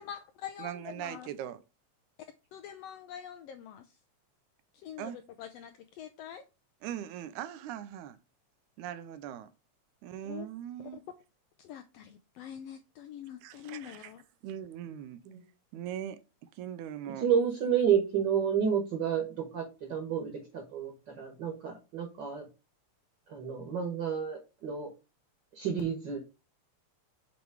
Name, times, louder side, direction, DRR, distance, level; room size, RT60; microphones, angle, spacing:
voice 1, 0.0-1.3 2.5-3.9 4.7-5.1 5.4-6.4 10.2-10.5 10.9-11.0 11.6-14.2, left 9 dB, 90° left, 1.4 m, -45 dB
voice 2, 0.6-1.6 5.0-5.2 6.8-8.2 8.8-9.5 10.0-11.1 13.4-14.1 14.4-15.2 15.7-17.3, right 10 dB, 90° right, 2.1 m, -40 dB
voice 3, 17.2-22.4 23.3-24.9 25.5-26.2, right 7 dB, 50° right, 1.5 m, -30 dB
7.1 x 3.1 x 4.7 m
omnidirectional pair, 3.4 m